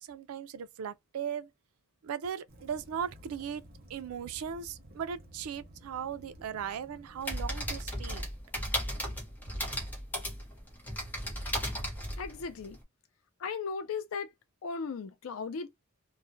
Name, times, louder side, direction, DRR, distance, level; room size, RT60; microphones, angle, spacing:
voice 1, 0.0-1.5 2.0-3.6 3.9-8.3, right 8 dB, 85° right, 0.4 m, -38 dB
Waves surf / Splash splatter / Trickle dribble, 2.5-8.3, equal, 45° right, 0.6 m, -54 dB
sound 1, 7.2-12.8, equal, 10° left, 0.7 m, -35 dB
voice 2, 12.2-12.8 13.4-14.3 14.6-15.7, left 5 dB, 70° left, 0.5 m, -36 dB
2.4 x 2.1 x 2.5 m
head